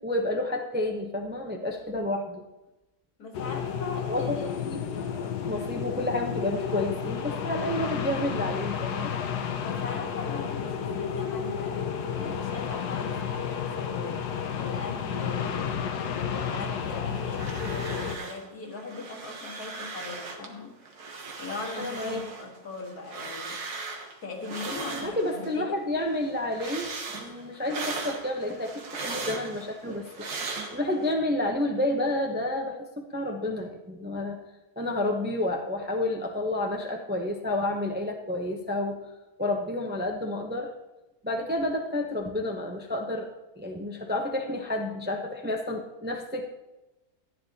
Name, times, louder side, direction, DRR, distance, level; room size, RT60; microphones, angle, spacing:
voice 1, 0.0-2.4 4.1-9.1 21.8-22.3 25.0-30.3 30.7-34.4 34.8-39.0 39.4-40.7 41.2-43.3 43.6-46.5, left 1 dB, 10° right, 2 dB, 0.6 m, -30 dB
voice 2, 3.2-4.5 5.5-5.7 9.6-14.3 14.5-20.8 21.4-23.6 24.2-25.9, left 3 dB, 75° left, 0 dB, 2.1 m, -40 dB
sound 1, 3.3-18.2, left 7 dB, 90° left, 1.4 m, -31 dB
sound 2, 17.1-18.5 18.7-20.5 20.9-25.6 25.9-31.1, right 3 dB, 80° right, 1.7 m, -38 dB
14.0 x 9.9 x 2.8 m, 1.0 s
omnidirectional pair, 1.7 m